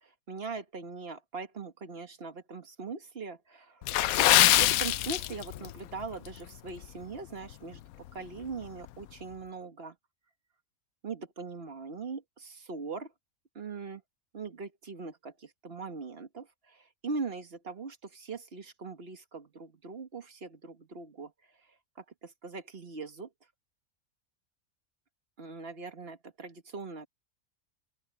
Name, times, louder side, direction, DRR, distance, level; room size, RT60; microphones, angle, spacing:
voice 1, 0.0-3.8 4.3-7.8 8.1-9.9 11.0-13.1 13.5-14.0 14.3-21.3 22.0-23.3 25.4-27.1, right 4 dB, 45° right, 1.7 m, -41 dB
Water / Splash splatter, 3.8-5.7 6.0-6.3 6.8-7.0 7.5-7.6, left 14 dB, 85° left, 1.0 m, -23 dB
open air
omnidirectional pair, 1.5 m